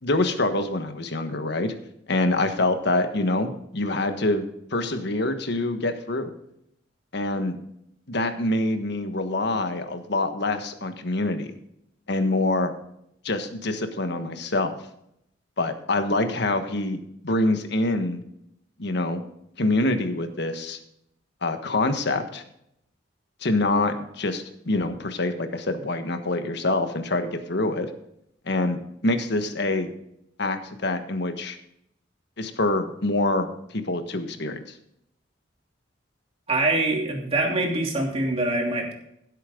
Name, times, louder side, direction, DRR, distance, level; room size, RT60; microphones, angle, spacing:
voice 1, 0.0-1.7 2.1-4.5 4.7-6.3 7.1-7.6 8.1-11.5 12.1-12.7 13.2-14.8 15.6-17.0 17.2-18.2 18.8-19.2 19.6-20.8 21.4-22.4 23.4-27.9 28.5-29.9 30.4-31.6 32.4-34.6, left 2 dB, 65° left, 8 dB, 1.4 m, -25 dB
voice 2, 36.5-38.9, right 2 dB, 35° right, 0 dB, 2.8 m, -24 dB
16.0 x 8.3 x 3.8 m, 0.75 s
head